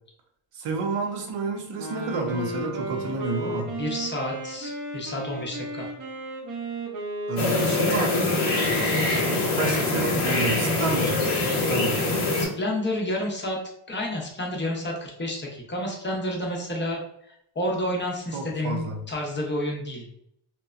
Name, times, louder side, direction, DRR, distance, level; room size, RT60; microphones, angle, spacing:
voice 1, 0.5-3.7 7.3-8.3 9.6-11.2 11.7-12.0 18.3-19.0, right 4 dB, 85° right, 3 dB, 0.7 m, -29 dB
Wind instrument woodwind instrument, 1.7-9.7, right 1 dB, 40° right, 0.5 m, -34 dB
voice 2, 3.8-5.9 12.4-13.6 13.9-17.0 17.3-20.1, left 1 dB, 25° left, -1 dB, 0.5 m, -30 dB
sound 1, 7.4-12.5, left 2 dB, 85° left, 0.9 m, -24 dB
2.8 x 2.1 x 2.3 m, 0.74 s
wide cardioid pair, 165°, 50 cm